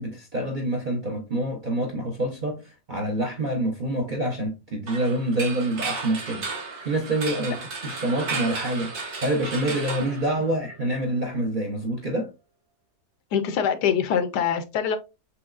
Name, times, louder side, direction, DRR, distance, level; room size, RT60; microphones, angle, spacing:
voice 1, 0.0-2.6 2.9-12.3, right 1 dB, 45° right, 0.6 m, -27 dB
sound 1, 4.9-10.9, right 4 dB, 65° right, 1.9 m, -34 dB
voice 2, 13.3-15.0, left 8 dB, 80° left, 1.2 m, -24 dB
6.2 x 3.0 x 2.4 m
omnidirectional pair, 1.8 m